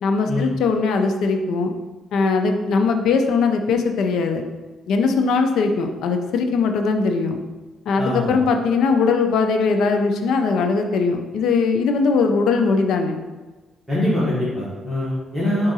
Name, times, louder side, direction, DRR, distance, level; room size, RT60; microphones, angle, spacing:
voice 1, 0.0-1.7 2.1-4.4 4.9-7.4 7.9-13.2, left 4 dB, 75° left, 5 dB, 0.4 m, -20 dB
voice 2, 8.0-8.4 13.9-15.7, left 1 dB, 5° right, -11 dB, 1.4 m, -23 dB
4.6 x 2.5 x 4.0 m, 1.2 s
cardioid pair, 90°, 0 cm